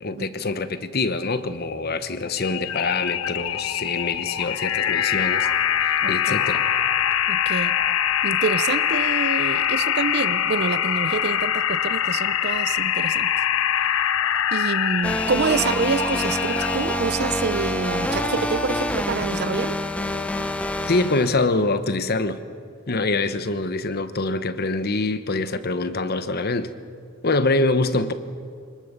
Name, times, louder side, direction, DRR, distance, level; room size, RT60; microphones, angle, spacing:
voice 1, 0.0-5.5 5.8-6.7 20.9-22.4 22.9-26.7 27.2-28.1, left 3 dB, 50° left, 11 dB, 1.0 m, -24 dB
sound 1, 2.4-17.0, left 10 dB, 75° left, 0.7 m, -23 dB
sound 2, 3.1-20.5, right 1 dB, 75° right, 7.8 m, -39 dB
voice 2, 6.0-6.3 7.3-7.7 8.2-13.3 14.5-19.8, right 4 dB, 50° right, 16 dB, 0.6 m, -27 dB
sound 3, 15.0-21.3, left 1 dB, 5° left, 1.0 m, -27 dB
25.0 x 20.0 x 6.8 m, 2.2 s
head